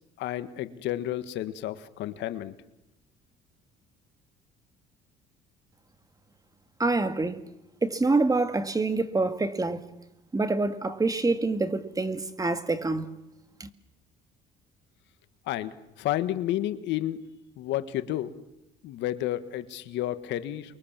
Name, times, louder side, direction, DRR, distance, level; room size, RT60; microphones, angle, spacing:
voice 1, 0.2-2.5 15.5-17.2 17.6-18.3 18.8-20.8, left 13 dB, 70° left, 1.6 m, -31 dB
voice 2, 6.8-7.4 7.8-9.8 10.3-13.1 13.6-13.7, right 3 dB, 20° right, 2.1 m, -26 dB
29.5 x 23.0 x 7.5 m
supercardioid pair, 85°, 19 cm